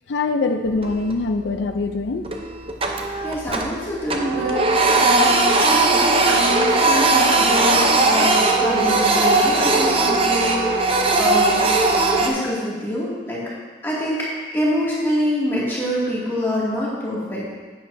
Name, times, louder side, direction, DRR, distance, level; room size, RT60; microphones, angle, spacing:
voice 1, 0.1-2.2, left 3 dB, 85° left, 7 dB, 0.5 m, -23 dB
Printer, 0.7-1.3 1.7-1.8 2.3-3.8 4.1-12.3, right 3 dB, 30° right, 0.7 m, -18 dB
voice 2, 3.2-11.7 12.2-13.5 13.8-14.3 14.5-17.4, equal, 15° left, -8 dB, 2.3 m, -26 dB
11.0 x 8.9 x 2.7 m, 1.4 s
head